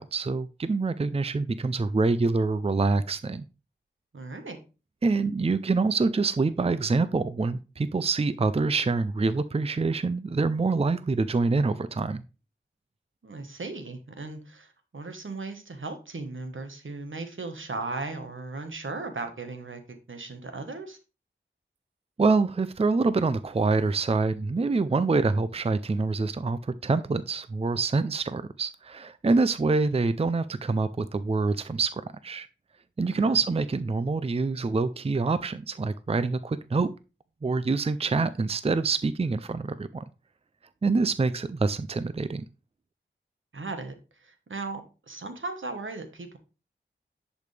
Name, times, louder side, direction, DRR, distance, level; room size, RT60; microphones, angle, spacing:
voice 1, 0.0-3.4 5.0-12.2 22.2-32.5 33.0-36.9 37.4-40.0 40.8-42.4, right 3 dB, 30° right, 13 dB, 0.5 m, -26 dB
voice 2, 4.1-4.6 13.2-19.8 20.1-21.0 33.1-33.4 43.5-46.4, right 3 dB, 75° right, 6 dB, 1.4 m, -37 dB
10.5 x 5.1 x 3.4 m, 0.32 s
wide cardioid pair, 40°, 20 cm